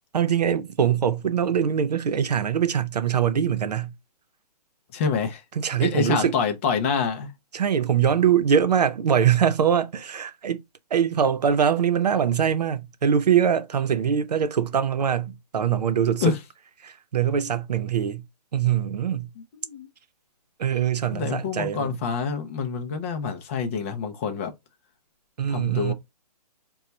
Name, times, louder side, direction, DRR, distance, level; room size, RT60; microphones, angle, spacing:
voice 1, 0.1-3.9 5.6-6.4 7.5-10.6 10.9-16.2 16.8-18.2 18.5-19.3 20.6-21.9 25.4-25.9, right 8 dB, 75° right, 0.8 m, -23 dB
voice 2, 4.9-5.4 5.8-7.3 16.2-16.4 19.5-19.9 21.1-24.5 25.5-25.9, left 6 dB, 20° left, 0.5 m, -27 dB
4.3 x 2.3 x 3.9 m
hypercardioid pair, 160°, 21 cm